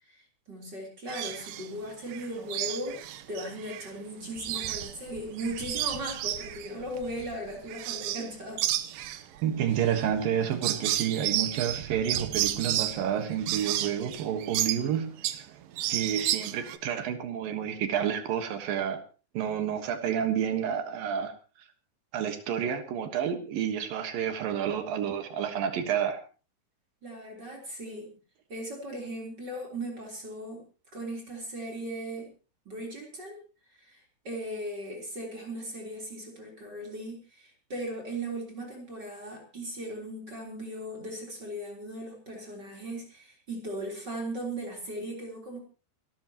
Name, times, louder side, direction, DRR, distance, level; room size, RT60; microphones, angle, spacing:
voice 1, 0.0-3.0 3.3-8.6 27.0-28.1 28.5-30.6 30.9-32.3 32.7-33.4 33.7-45.6, right 1 dB, 25° right, 3.7 m, -38 dB
sound 1, 1.1-1.7 2.1-3.9 4.2-8.3 8.6-15.5 15.8-16.8, right 13 dB, 90° right, 1.9 m, -32 dB
voice 2, 9.4-15.2 15.9-19.0 19.3-21.3 22.1-26.2, right 9 dB, 65° right, 2.6 m, -29 dB
28.5 x 12.5 x 3.0 m
omnidirectional pair, 5.3 m